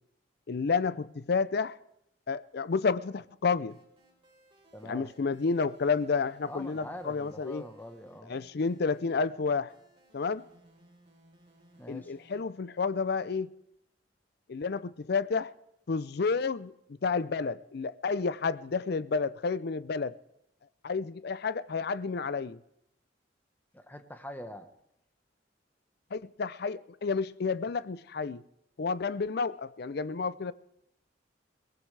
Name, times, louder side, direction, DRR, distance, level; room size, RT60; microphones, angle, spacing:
voice 1, 0.5-1.8 2.3-3.8 4.8-7.6 8.3-9.7 10.1-10.5 11.9-13.5 14.5-15.5 15.9-16.7 17.0-20.2 20.8-22.6 26.1-28.4 28.8-30.5, left 4 dB, 60° left, 0.5 m, -30 dB
sound 1, 3.7-12.4, right 1 dB, 30° right, 4.3 m, -63 dB
voice 2, 4.7-5.1 6.5-8.3 11.8-12.1 23.7-24.7, equal, 10° left, 1.1 m, -44 dB
22.5 x 18.0 x 3.4 m
head